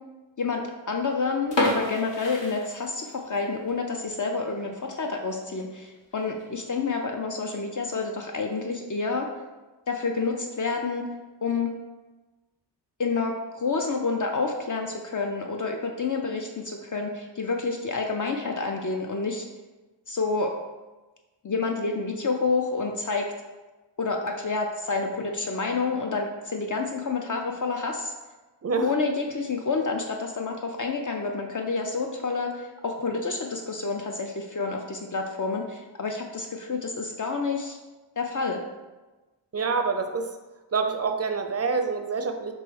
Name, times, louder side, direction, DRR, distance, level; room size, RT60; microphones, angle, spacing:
voice 1, 0.4-9.3 9.9-11.0 11.4-11.7 13.0-19.5 20.1-20.5 21.4-23.3 24.0-28.1 28.8-37.8 38.2-38.6, left 4 dB, 45° left, 2 dB, 0.5 m, -29 dB
sound 1, 1.4-3.3 3.7-3.8 4.3-4.5 4.9-5.0 5.3-5.4 6.1-6.4, left 1 dB, 70° left, 1.1 m, -28 dB
voice 2, 39.5-40.4 40.7-42.5, right 4 dB, 35° right, 6 dB, 0.4 m, -26 dB
3.1 x 3.0 x 4.6 m, 1.2 s
wide cardioid pair, 60°, 45 cm